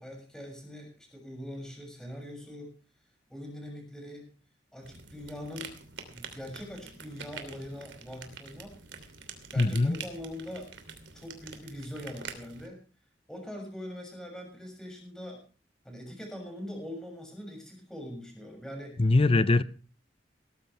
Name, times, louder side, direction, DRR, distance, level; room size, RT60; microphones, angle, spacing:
voice 1, 0.0-2.8 3.3-4.3 4.7-5.7 6.1-8.8 9.5-10.7 11.1-12.8 13.3-15.4 15.8-19.0, equal, 5° left, 6.6 m, -42 dB
sound 1, 4.8-12.7, right 5 dB, 80° right, 2.9 m, -46 dB
voice 2, 9.6-10.0 19.0-19.6, left 2 dB, 30° left, 0.6 m, -22 dB
19.0 x 13.5 x 3.4 m
head